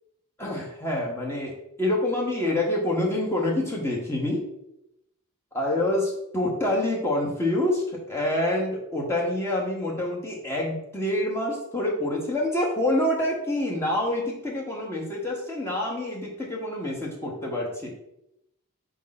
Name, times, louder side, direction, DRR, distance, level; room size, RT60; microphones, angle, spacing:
voice 1, 0.4-1.5 1.8-4.5 5.5-17.9, left 1 dB, 10° left, -2 dB, 0.8 m, -27 dB
4.0 x 2.6 x 3.9 m, 0.82 s
head